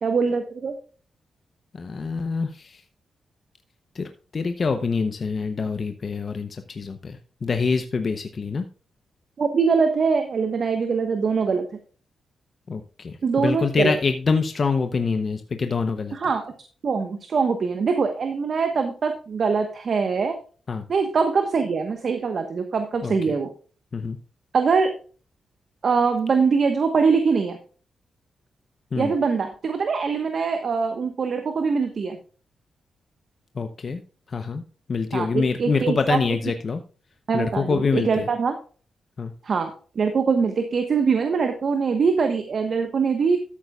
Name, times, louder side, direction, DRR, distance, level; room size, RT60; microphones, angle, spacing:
voice 1, 0.0-0.7 9.4-11.6 13.2-13.9 16.1-16.5 16.8-20.4 20.9-23.5 24.5-24.9 25.8-27.6 28.9-32.2 35.1-36.2 37.3-38.6 39.4-43.4, right 5 dB, 55° right, 6 dB, 1.2 m, -23 dB
voice 2, 1.7-2.8 3.9-8.7 12.7-16.2 20.7-20.8 23.0-23.3 23.9-24.2 28.9-29.1 33.6-34.0 34.3-34.6 34.9-36.8 37.3-38.3 39.2-39.3, left 4 dB, 45° left, 8 dB, 0.7 m, -25 dB
13.0 x 8.5 x 2.4 m, 0.38 s
cardioid pair, 95°, 0 cm